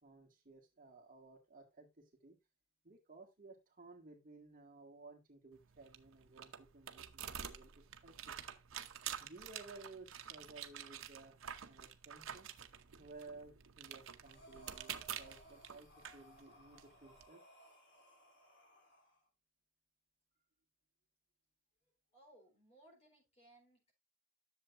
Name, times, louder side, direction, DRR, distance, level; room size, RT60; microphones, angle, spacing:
voice 1, 0.0-2.4 2.8-8.3 9.2-12.5 13.0-17.4, right 3 dB, 45° right, 1 dB, 1.9 m, -57 dB
sound 1, 5.5-17.2, right 9 dB, 90° right, 0.8 m, -49 dB
Breathing, 14.2-19.2, right 1 dB, 60° left, 3.2 m, -62 dB
voice 2, 22.1-23.9, right 1 dB, 30° left, 1 dB, 4.0 m, -64 dB
10.5 x 7.1 x 2.6 m, 0.21 s
head